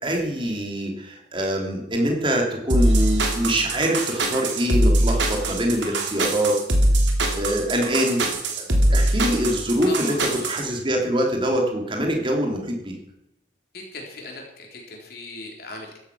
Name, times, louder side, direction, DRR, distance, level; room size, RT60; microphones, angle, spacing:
voice 1, 0.0-6.6 7.3-8.2 8.6-13.0, equal, 30° right, 2 dB, 3.1 m, -24 dB
sound 1, 2.7-10.6, right 1 dB, 90° right, 3.0 m, -22 dB
voice 2, 9.9-10.5 13.7-16.0, left 2 dB, 55° left, 1 dB, 3.6 m, -38 dB
14.5 x 12.0 x 6.2 m, 0.86 s
head